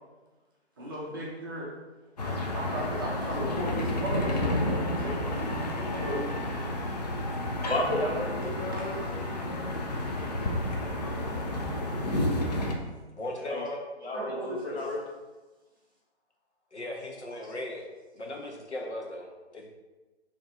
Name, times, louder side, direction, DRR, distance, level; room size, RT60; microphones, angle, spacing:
voice 1, 0.8-1.7 2.2-6.3 8.7-9.1 9.3-9.4 13.5-13.6 14.1-14.9 16.9-17.0 17.4-17.5, equal, 20° right, -4 dB, 0.5 m, -36 dB
sound 1, 2.2-12.7, left 1 dB, 40° left, 0.5 m, -31 dB
voice 2, 7.7-8.9 13.4-13.7 14.0-15.0, left 1 dB, 60° left, -2 dB, 1.3 m, -32 dB
sound 2, 10.0-13.0, left 1 dB, 20° left, 1.1 m, -48 dB
voice 3, 13.2-13.8 16.7-17.9 18.1-19.7, left 1 dB, 85° left, 0 dB, 1.0 m, -37 dB
4.5 x 2.9 x 3.8 m, 1.2 s
figure-of-eight pair, 135°, 33 cm